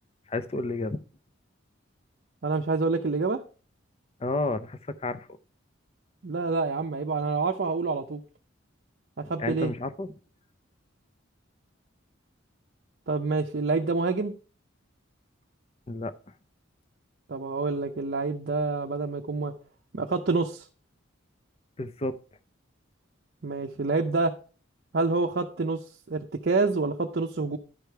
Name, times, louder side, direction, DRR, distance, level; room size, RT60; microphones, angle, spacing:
voice 1, 0.3-1.0 4.2-5.3 9.4-10.1 15.9-16.1 21.8-22.2, left 2 dB, 30° left, 12 dB, 0.5 m, -31 dB
voice 2, 2.4-3.4 6.2-8.2 9.2-9.7 13.1-14.3 17.3-19.5 19.9-20.6 23.4-24.3 24.9-25.8 26.1-27.6, right 3 dB, 55° right, 3 dB, 0.6 m, -27 dB
11.5 x 5.0 x 4.6 m, 0.37 s
head